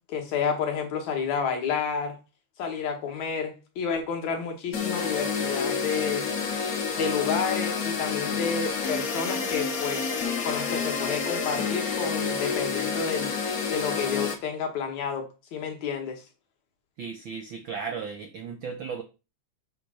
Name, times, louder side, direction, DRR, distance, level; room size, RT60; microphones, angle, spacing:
voice 1, 0.1-2.2 2.6-6.3 7.0-10.0 10.4-13.3 13.7-15.2 15.5-16.2, left 6 dB, 70° left, 4 dB, 2.7 m, -30 dB
sound 1, 4.7-14.3, left 5 dB, 55° left, 0.9 m, -29 dB
voice 2, 17.0-19.0, right 6 dB, 85° right, 4 dB, 1.0 m, -35 dB
7.3 x 3.3 x 6.2 m, 0.30 s
omnidirectional pair, 3.4 m